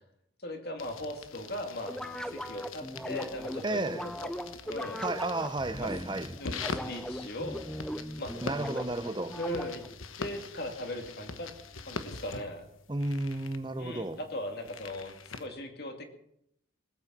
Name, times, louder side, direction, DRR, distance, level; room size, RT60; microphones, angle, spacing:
voice 1, 0.4-2.0 2.3-3.8 4.2-4.3 4.6-5.0 5.8-5.9 6.4-7.6 8.2-8.4 9.3-9.8 10.2-11.5 11.9-12.7 13.8-16.0, left 1 dB, 50° left, 2.4 m, -38 dB
sound 1, 0.8-15.5, left 4 dB, 85° left, 1.3 m, -44 dB
sound 2, 1.8-10.0, equal, 5° left, 0.7 m, -39 dB
voice 2, 3.6-4.1 5.0-6.3 8.4-9.4 12.9-14.2, right 2 dB, 20° right, 0.9 m, -32 dB
20.0 x 8.8 x 7.5 m
head